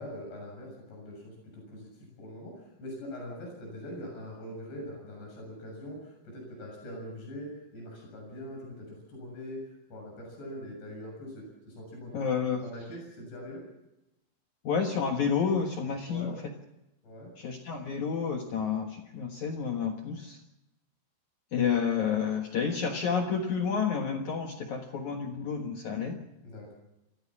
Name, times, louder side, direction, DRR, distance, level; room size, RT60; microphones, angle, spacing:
voice 1, 0.0-12.2 12.6-13.6 16.1-16.3 17.0-17.3 26.4-26.7, equal, 80° left, 0 dB, 9.1 m, -43 dB
voice 2, 12.1-12.6 14.6-16.4 17.4-20.4 21.5-26.2, left 6 dB, 60° left, 3 dB, 2.4 m, -30 dB
27.0 x 15.0 x 7.3 m, 0.92 s
omnidirectional pair, 4.8 m